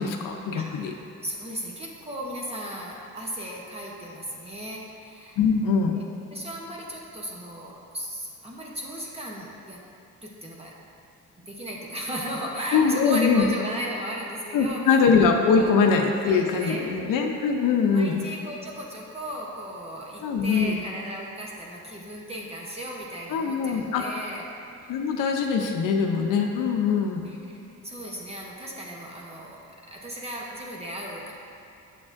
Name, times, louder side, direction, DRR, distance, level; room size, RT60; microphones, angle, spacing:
voice 1, 0.0-0.9 5.4-6.0 12.7-13.5 14.5-18.2 20.2-20.8 23.3-24.0 24.9-27.3, left 5 dB, 90° left, 3 dB, 0.6 m, -22 dB
voice 2, 0.5-5.4 5.9-6.0 6.3-9.8 10.2-10.7 11.5-15.1 15.6-15.8 16.2-17.0 17.9-24.5 24.8-25.0 26.6-29.6 29.9-31.3, equal, 20° right, -3 dB, 0.8 m, -36 dB
8.6 x 6.6 x 2.5 m, 2.8 s
cardioid pair, 145°, 31 cm